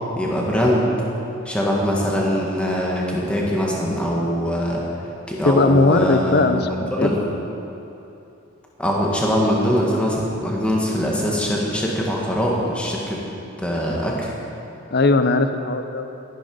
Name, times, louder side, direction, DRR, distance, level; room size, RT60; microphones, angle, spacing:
voice 1, 0.1-0.9 1.4-4.8 5.3-6.6 7.0-7.2 8.8-13.2 13.6-14.3, equal, 5° left, -3 dB, 1.7 m, -22 dB
voice 2, 5.4-7.1 14.9-16.1, left 3 dB, 45° left, 9 dB, 0.6 m, -18 dB
13.0 x 10.5 x 5.4 m, 2.9 s
head